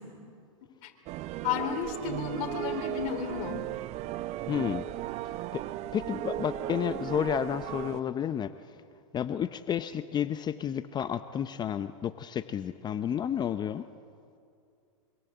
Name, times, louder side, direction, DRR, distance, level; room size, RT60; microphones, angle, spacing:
sound 1, 1.1-8.0, right 13 dB, 40° right, 0.7 m, -36 dB
voice 1, 1.4-3.6, left 8 dB, 50° left, 3 dB, 4.1 m, -33 dB
voice 2, 4.5-4.9 5.5-5.6 5.9-8.8 9.1-13.8, left 9 dB, 25° left, 11 dB, 0.7 m, -31 dB
24.5 x 24.5 x 8.0 m, 2.4 s
hypercardioid pair, 115°, 18 cm